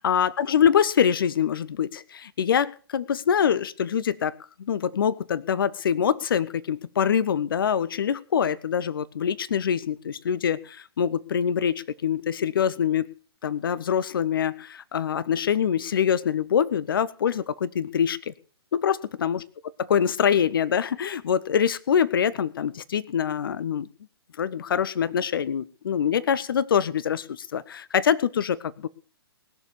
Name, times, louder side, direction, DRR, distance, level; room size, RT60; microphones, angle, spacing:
voice 1, 0.0-13.1 13.4-18.3 18.7-19.4 19.8-23.9 24.4-28.9, left 8 dB, 55° left, 17 dB, 0.8 m, -24 dB
19.5 x 6.9 x 6.9 m, 0.41 s
figure-of-eight pair, 125°, 14 cm